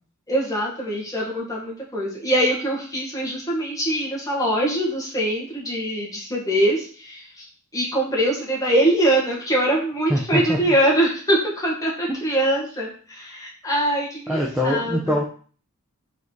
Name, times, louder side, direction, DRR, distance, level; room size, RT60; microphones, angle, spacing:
voice 1, 0.3-7.2 7.7-15.2, right 1 dB, 15° left, -3 dB, 1.8 m, -23 dB
voice 2, 10.1-10.7 14.3-15.2, equal, 5° right, -4 dB, 0.8 m, -23 dB
4.9 x 4.1 x 4.6 m, 0.42 s
head